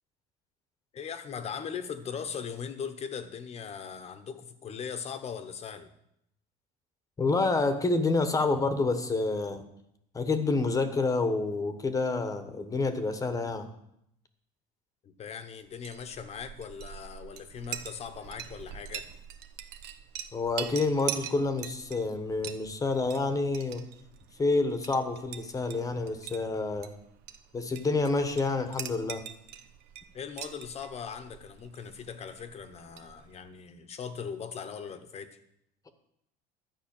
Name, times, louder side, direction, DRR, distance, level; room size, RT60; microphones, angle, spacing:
voice 1, 0.9-5.9 15.0-19.1 30.1-35.3, left 7 dB, 35° left, 9 dB, 1.1 m, -39 dB
voice 2, 7.2-9.6 10.1-13.7 20.3-23.8 24.4-26.9 27.5-29.2, left 3 dB, 20° left, 9 dB, 1.2 m, -28 dB
Chink clink, 15.7-33.5, right 10 dB, 65° right, 0.9 m, -44 dB
12.0 x 5.5 x 8.8 m, 0.76 s
cardioid pair, 135°, 18 cm